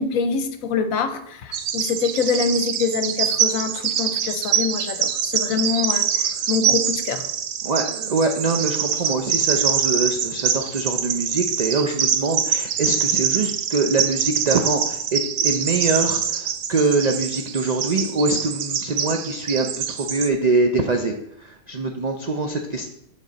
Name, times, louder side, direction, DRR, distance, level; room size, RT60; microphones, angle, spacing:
voice 1, 0.0-6.1 6.5-7.2, left 5 dB, 75° left, 9 dB, 1.0 m, -25 dB
Bird vocalization bird call bird song, 1.5-20.3, right 8 dB, 65° right, 0.8 m, -24 dB
voice 2, 7.6-22.9, right 3 dB, 80° right, 4 dB, 0.3 m, -24 dB
7.5 x 5.3 x 3.9 m, 0.77 s
omnidirectional pair, 1.5 m